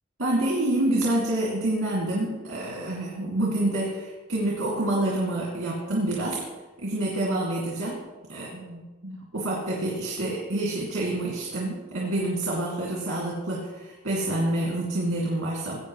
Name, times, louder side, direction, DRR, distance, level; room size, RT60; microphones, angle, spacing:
voice 1, 0.2-6.4 6.8-8.0 8.3-15.8, right 1 dB, 65° right, -5 dB, 2.4 m, -27 dB
17.0 x 8.7 x 3.1 m, 1.2 s
head